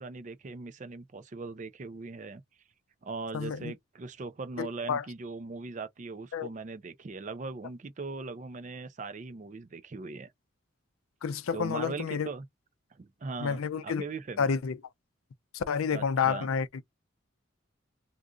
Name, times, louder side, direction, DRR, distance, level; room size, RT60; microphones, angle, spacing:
voice 1, 0.0-2.4 3.0-10.3 11.5-12.5 13.0-14.5 15.9-16.5, right 3 dB, 35° right, 0.4 m, -40 dB
voice 2, 3.3-3.7 4.6-5.0 6.3-6.5 11.2-12.3 13.4-14.1 14.4-14.8 15.5-16.7, left 6 dB, 85° left, 0.4 m, -29 dB
2.5 x 2.4 x 3.7 m
head